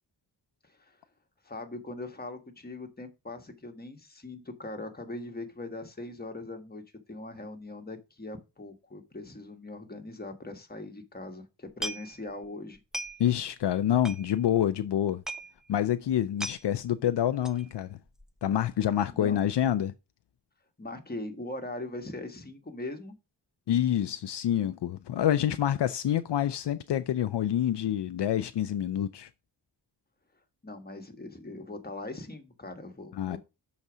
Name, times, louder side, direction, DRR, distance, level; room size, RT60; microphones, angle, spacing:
voice 1, 1.4-6.8 7.1-12.8 19.2-19.4 20.8-23.1 30.6-33.4, left 2 dB, 20° left, 1.4 m, -40 dB
sound 1, 11.7-12.5 12.7-13.4 13.7-13.8 14.0-14.6 14.9-15.0 15.2-15.5 15.9-16.0 16.2-16.6 17.4-17.7 18.1-18.4 18.7-18.8, right 1 dB, ahead, 0.5 m, -38 dB
voice 2, 13.2-15.2 15.7-18.0 18.4-19.9 23.7-29.3 33.2-33.4, left 11 dB, 70° left, 0.6 m, -27 dB
6.5 x 4.2 x 6.1 m
wide cardioid pair, 105°, 42 cm